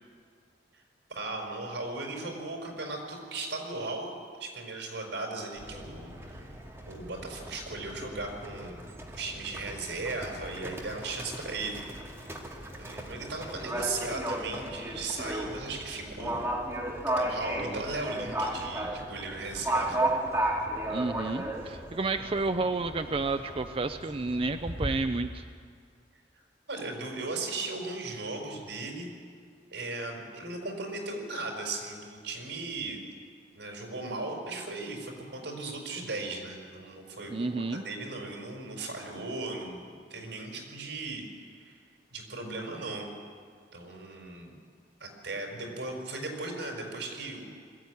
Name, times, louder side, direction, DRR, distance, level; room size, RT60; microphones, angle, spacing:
voice 1, 1.1-4.1 4.4-6.4 6.9-8.9 9.2-11.8 12.8-16.3 17.2-20.1 26.7-29.1 29.7-33.0 33.5-41.2 41.6-41.8 42.1-43.1 43.7-44.5 45.0-47.5, right 3 dB, 80° right, 2 dB, 4.8 m, -37 dB
Livestock farm animals working animals, 5.6-24.9, right 1 dB, 15° right, 2.2 m, -35 dB
voice 2, 20.9-25.4 37.3-37.8, right 3 dB, 35° right, 8 dB, 0.5 m, -31 dB
21.5 x 14.0 x 9.5 m, 2.1 s
head